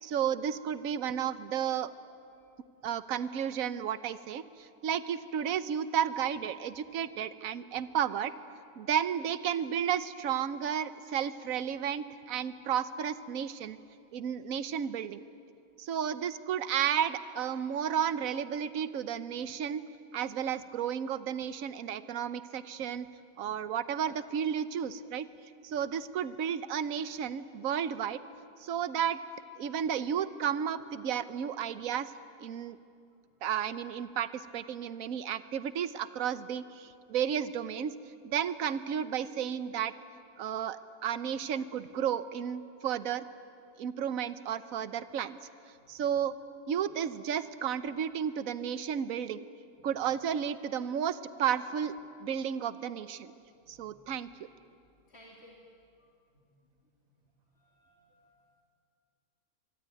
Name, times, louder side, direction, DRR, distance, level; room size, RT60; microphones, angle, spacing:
voice 1, 0.0-1.9 2.8-8.3 8.8-13.8 14.1-15.2 15.8-19.8 20.1-23.1 23.4-25.3 25.6-28.2 28.6-29.2 29.6-32.1 32.4-32.8 33.4-37.9 38.2-39.9 40.4-40.8 41.0-43.2 43.8-45.4 45.9-46.3 46.7-49.4 49.8-51.9 52.2-53.3 53.7-54.3, right 8 dB, 70° right, 13 dB, 1.2 m, -32 dB
voice 2, 55.1-55.6 56.3-56.5 57.6-58.3, equal, 45° left, -3 dB, 3.1 m, -57 dB
24.5 x 23.5 x 9.2 m, 2.5 s
omnidirectional pair, 1.6 m